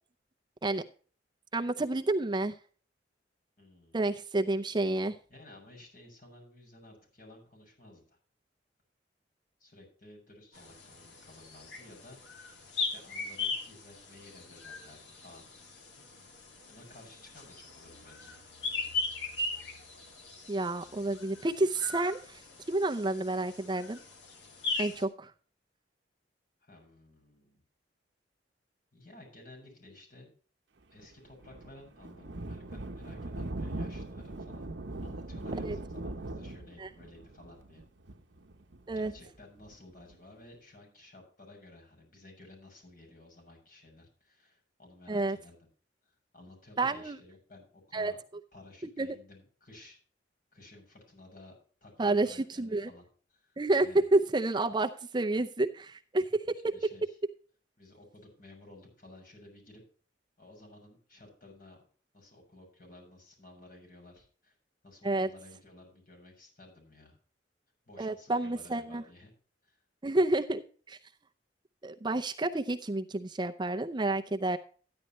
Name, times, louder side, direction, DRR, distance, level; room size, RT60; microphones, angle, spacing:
voice 1, 1.5-2.6 3.9-5.2 20.5-22.4 22.7-24.0 24.8-25.3 35.6-35.8 36.8-36.9 38.9-39.1 45.1-45.4 46.8-47.2 47.9-48.1 49.0-49.1 52.0-52.9 53.6-56.8 65.0-65.3 68.0-69.0 70.0-70.6 70.9-71.0 71.8-74.6, right 2 dB, 25° right, 6 dB, 0.6 m, -29 dB
voice 2, 3.6-4.1 5.3-8.2 9.6-12.2 12.8-15.5 16.7-18.4 26.6-27.6 28.9-30.3 30.9-34.7 35.0-37.8 39.0-45.6 46.0-48.2 48.5-50.0 50.5-53.1 53.3-54.1 56.7-57.2 57.8-59.8 60.4-61.8 62.1-64.6 64.8-67.2 67.9-69.3 69.6-69.8, left 2 dB, 50° left, 1 dB, 7.0 m, -54 dB
sound 1, 10.5-25.0, left 3 dB, 70° left, 2.6 m, -39 dB
Thunder, 31.0-40.1, right 2 dB, 70° right, 0.9 m, -40 dB
14.0 x 10.5 x 3.1 m, 0.42 s
head